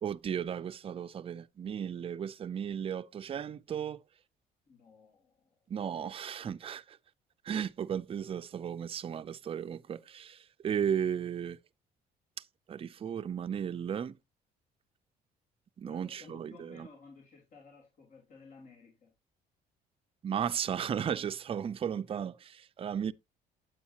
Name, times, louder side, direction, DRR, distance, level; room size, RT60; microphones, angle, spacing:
voice 1, 0.0-4.0 5.7-7.0 7.5-11.6 12.7-14.1 15.8-16.9 20.2-23.1, right 8 dB, 35° right, 0.5 m, -35 dB
voice 2, 4.7-5.6 15.9-19.1, left 4 dB, 50° left, 3.6 m, -55 dB
9.0 x 8.4 x 2.9 m
cardioid pair, 110°, 17 cm